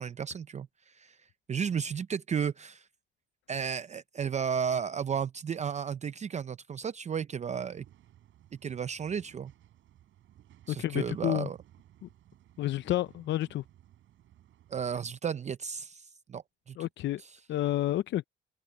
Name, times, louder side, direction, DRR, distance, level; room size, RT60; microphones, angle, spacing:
voice 1, 0.0-2.9 3.5-7.8 8.6-9.5 10.7-11.6 14.7-16.9 17.2-17.4, right 7 dB, 35° right, 0.5 m, -34 dB
sound 1, 7.5-15.1, right 12 dB, 80° right, 5.3 m, -59 dB
voice 2, 10.7-11.5 12.0-12.1 12.6-13.6 16.8-17.2 17.5-18.2, left 14 dB, 65° left, 0.5 m, -30 dB
cardioid pair, 90°, 20 cm